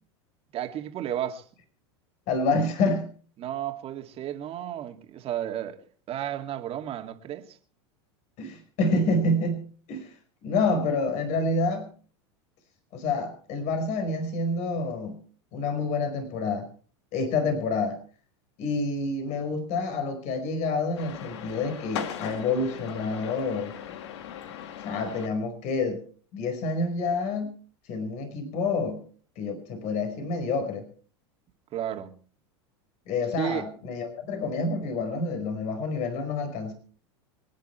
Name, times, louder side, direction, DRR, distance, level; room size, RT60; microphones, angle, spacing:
voice 1, 0.5-1.4 3.4-5.8 6.1-7.6 31.7-32.2 33.4-33.6, right 11 dB, 40° right, 2.4 m, -33 dB
voice 2, 2.3-3.1 8.4-10.1 10.4-11.8 12.9-15.2 15.5-16.6 17.1-18.0 18.6-23.7 24.8-26.0 26.3-27.5 27.9-29.0 29.4-30.8 33.1-36.7, left 3 dB, 55° left, 4.9 m, -28 dB
sound 1, 21.0-25.3, left 9 dB, 75° left, 1.9 m, -38 dB
25.5 x 10.5 x 4.5 m
hypercardioid pair, 100°, 15 cm